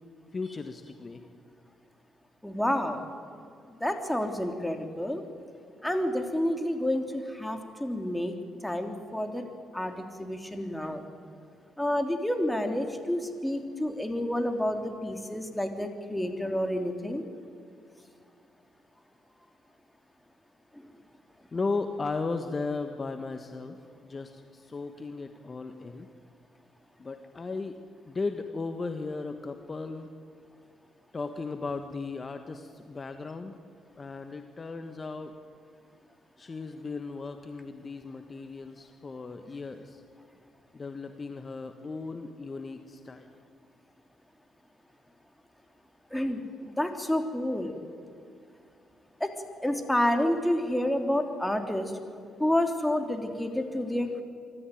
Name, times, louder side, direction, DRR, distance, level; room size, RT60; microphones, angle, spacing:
voice 1, 0.3-1.2 21.5-23.8 24.0-26.1 27.0-27.8 28.0-30.1 31.1-33.6 34.0-35.3 36.4-40.0 40.7-43.3, left 3 dB, 35° left, 7 dB, 1.4 m, -36 dB
voice 2, 2.4-3.0 3.8-5.2 5.8-8.3 8.6-9.4 9.7-11.0 11.8-17.2 46.1-47.7 49.2-49.3 49.6-51.9 52.4-54.2, left 1 dB, 5° left, 5 dB, 3.2 m, -29 dB
24.5 x 14.0 x 9.3 m, 2.4 s
hypercardioid pair, 50°, 0 cm